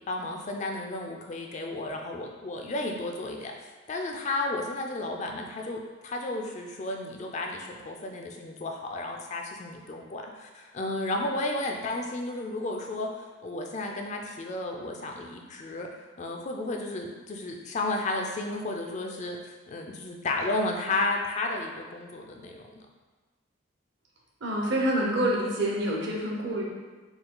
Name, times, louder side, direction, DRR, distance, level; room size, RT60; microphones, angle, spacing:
voice 1, 0.1-3.5 3.9-13.1 13.4-15.9 16.2-19.4 19.7-22.8, left 2 dB, 35° left, 2 dB, 0.4 m, -33 dB
voice 2, 24.4-26.6, right 1 dB, 55° right, -2 dB, 0.8 m, -27 dB
4.3 x 2.3 x 3.8 m, 1.4 s
head